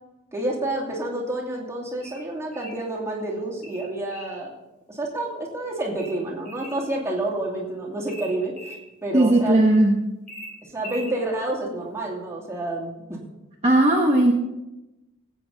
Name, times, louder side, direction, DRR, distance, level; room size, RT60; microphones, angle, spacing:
voice 1, 0.3-4.5 4.9-9.7 10.6-13.2, right 2 dB, 15° right, -4 dB, 2.7 m, -29 dB
sound 1, 2.0-2.9 3.6-4.4 6.0-6.8 8.1-8.8 10.3-11.2, equal, 35° left, 2.8 m, -41 dB
voice 2, 9.1-10.0 13.6-14.3, right 1 dB, 30° right, -1 dB, 1.2 m, -17 dB
17.5 x 8.6 x 4.1 m, 0.97 s
head